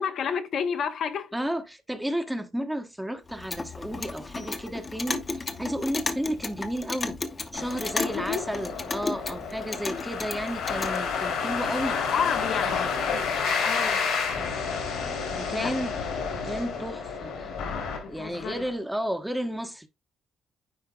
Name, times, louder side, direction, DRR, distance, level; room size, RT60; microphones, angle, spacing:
voice 1, 0.0-1.3 8.0-8.5 12.0-14.1 15.5-15.8 17.9-18.7, left 7 dB, 65° left, 0.8 m, -31 dB
voice 2, 1.3-7.2 7.5-12.0 15.4-16.0 16.4-17.5 18.1-19.9, equal, 5° right, 1.0 m, -32 dB
Clock, 3.3-11.0, left 3 dB, 30° left, 0.9 m, -34 dB
sound 1, 7.5-18.7, left 5 dB, 85° left, 2.8 m, -30 dB
9.7 x 4.4 x 2.3 m
cardioid pair, 90°, 0 cm